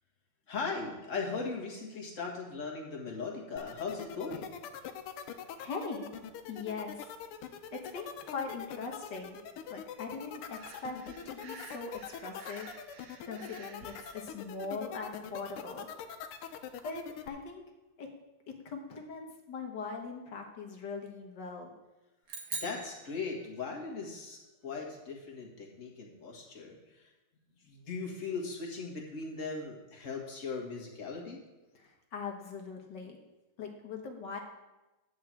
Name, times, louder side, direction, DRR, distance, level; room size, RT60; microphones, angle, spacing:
voice 1, 0.5-4.5 22.5-27.1 27.6-31.4, left 4 dB, 35° left, -1 dB, 2.0 m, -39 dB
sound 1, 3.6-17.3, left 8 dB, 90° left, 1.7 m, -43 dB
voice 2, 5.3-6.1 6.5-7.1 7.7-9.4 9.7-12.7 13.2-15.9 16.8-17.6 18.0-18.1 18.6-21.7 31.7-33.2 33.6-34.4, left 4 dB, 55° left, 2 dB, 1.7 m, -41 dB
Breathing, 10.5-14.2, right 4 dB, 75° right, 2.0 m, -52 dB
sound 2, 22.3-23.9, right 5 dB, 50° right, 1.4 m, -42 dB
10.0 x 4.9 x 7.6 m, 1.1 s
omnidirectional pair, 2.4 m